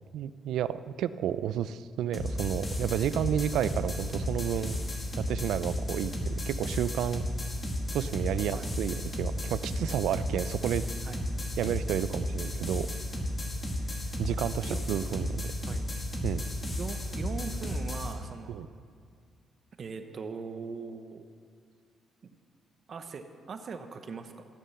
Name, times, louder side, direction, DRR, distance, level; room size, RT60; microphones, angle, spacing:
voice 1, 0.1-4.8 5.2-7.2 7.9-10.8 11.6-12.9 14.2-15.5 16.2-16.4 18.5-18.7, right 10 dB, 80° right, 14 dB, 0.5 m, -31 dB
sound 1, 2.1-18.1, left 1 dB, 25° left, 2.2 m, -33 dB
voice 2, 13.8-14.1 14.7-14.8 15.7-15.9 16.7-18.6 19.8-21.2 22.2-22.3 22.9-24.5, right 5 dB, 50° right, 7 dB, 1.0 m, -40 dB
14.5 x 11.5 x 5.7 m, 2.2 s
cardioid pair, 90°, 0 cm